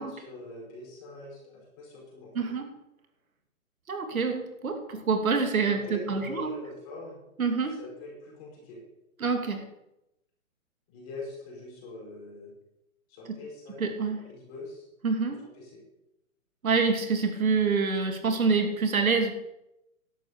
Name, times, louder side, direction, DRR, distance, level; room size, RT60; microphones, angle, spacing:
voice 1, 0.0-2.5 5.6-7.2 7.8-8.8 10.9-12.5 13.1-13.8 14.1-14.9 15.5-15.8, left 2 dB, 25° left, -3 dB, 5.5 m, -43 dB
voice 2, 3.9-6.5 7.4-7.8 9.2-9.6 13.3-13.4 13.8-14.2 15.0-15.4 16.6-19.3, right 4 dB, 80° right, 5 dB, 2.6 m, -26 dB
11.5 x 9.0 x 6.8 m, 0.88 s
hypercardioid pair, 160°, 41 cm